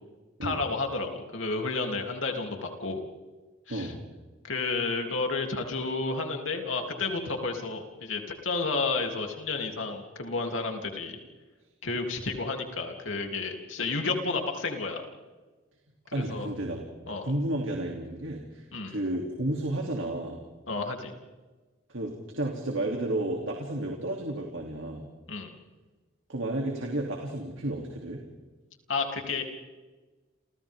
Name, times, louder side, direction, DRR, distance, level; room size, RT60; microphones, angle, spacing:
voice 1, 0.4-3.0 3.7-3.9 4.4-11.2 11.8-15.0 16.2-16.5 17.1-17.3 18.7-19.0 20.7-21.1 25.3-25.5 28.9-29.4, left 3 dB, 75° left, 2 dB, 3.2 m, -31 dB
voice 2, 3.7-4.0 16.1-16.8 17.2-20.4 21.9-25.1 26.3-28.2, right 1 dB, 75° right, 0 dB, 3.0 m, -32 dB
30.0 x 28.5 x 3.7 m, 1.3 s
head